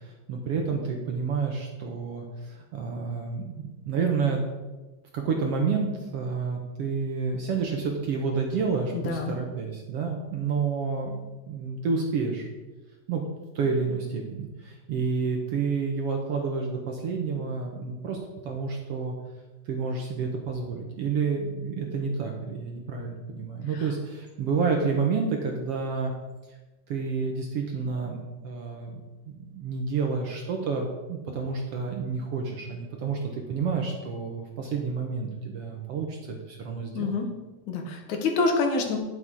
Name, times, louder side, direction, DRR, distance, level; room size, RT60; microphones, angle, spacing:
voice 1, 0.0-4.4 5.1-12.5 13.1-13.2 13.6-19.2 19.7-26.1 26.9-29.0 29.3-37.1, right 5 dB, 65° right, 1 dB, 1.7 m, -29 dB
voice 2, 8.9-9.4 23.7-23.9 36.9-37.3 37.7-39.0, left 3 dB, 70° left, 3 dB, 2.6 m, -27 dB
10.5 x 7.4 x 4.8 m, 1.2 s
omnidirectional pair, 3.6 m